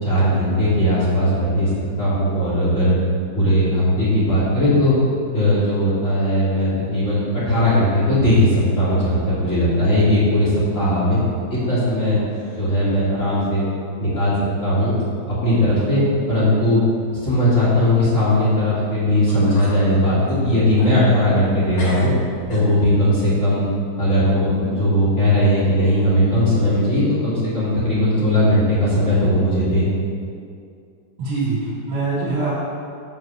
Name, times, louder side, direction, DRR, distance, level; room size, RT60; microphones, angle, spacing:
voice 1, 0.0-1.7 2.0-2.9 3.3-4.9 5.3-11.2 11.5-12.2 12.6-13.6 14.0-14.3 14.6-14.9 15.3-16.0 16.3-16.8 17.2-22.1 22.5-23.6 24.0-29.9, left 1 dB, 25° left, -10 dB, 2.5 m, -18 dB
sound 1, 11.3-12.0 12.3-12.8 13.2-13.3 14.2-14.3 15.0-15.1 15.5-15.9 16.2-16.3 18.8-18.9 19.3-19.8 20.2-21.5 21.8-23.1, equal, 45° left, 3.7 m, -36 dB
voice 2, 31.2-32.5, right 3 dB, 70° right, -12 dB, 3.8 m, -23 dB
9.0 x 4.7 x 7.4 m, 2.3 s
omnidirectional pair, 4.6 m